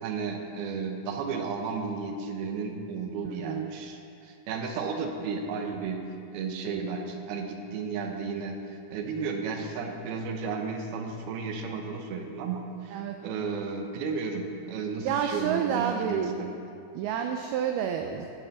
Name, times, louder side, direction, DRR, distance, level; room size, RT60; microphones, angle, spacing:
voice 1, 0.0-6.0 6.3-16.5, right 5 dB, 75° right, 4 dB, 2.5 m, -33 dB
voice 2, 15.1-16.3 16.9-18.3, right 8 dB, 90° right, 5 dB, 2.2 m, -29 dB
17.0 x 9.1 x 4.1 m, 2.5 s
omnidirectional pair, 5.1 m